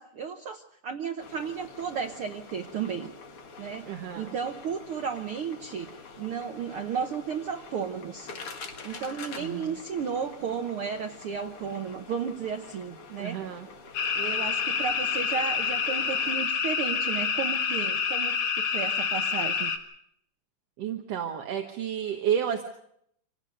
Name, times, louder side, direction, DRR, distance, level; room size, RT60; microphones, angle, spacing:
voice 1, 0.0-3.1 3.6-8.3 8.8-13.6 14.2-19.7, right 6 dB, 85° right, 6 dB, 1.2 m, -34 dB
sound 1, 1.2-16.4, left 4 dB, 45° left, 2.3 m, -46 dB
voice 2, 3.9-4.3 9.4-9.8 13.2-13.7 20.8-22.6, right 9 dB, 60° right, 4 dB, 2.0 m, -31 dB
sound 2, 13.9-19.8, left 6 dB, 60° left, 3.0 m, -28 dB
27.0 x 17.5 x 6.6 m, 0.73 s
omnidirectional pair, 3.9 m